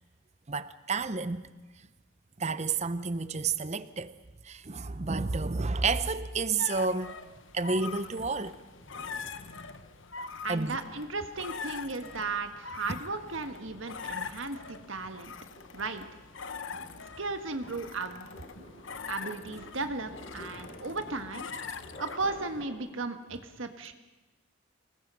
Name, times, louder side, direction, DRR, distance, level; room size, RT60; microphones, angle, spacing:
voice 1, 0.5-1.4 2.4-4.1 4.5-7.1 7.5-8.6 10.5-10.8, right 4 dB, 35° right, 0.7 m, -30 dB
sound 1, 6.6-22.6, left 5 dB, 65° left, 1.0 m, -43 dB
sound 2, 8.7-10.1 10.6-22.7, equal, 45° left, 4.7 m, -52 dB
voice 2, 10.4-15.3 15.7-16.1 17.2-18.3 19.1-21.5 22.0-23.9, right 3 dB, 70° right, 1.6 m, -35 dB
26.0 x 19.5 x 5.6 m
head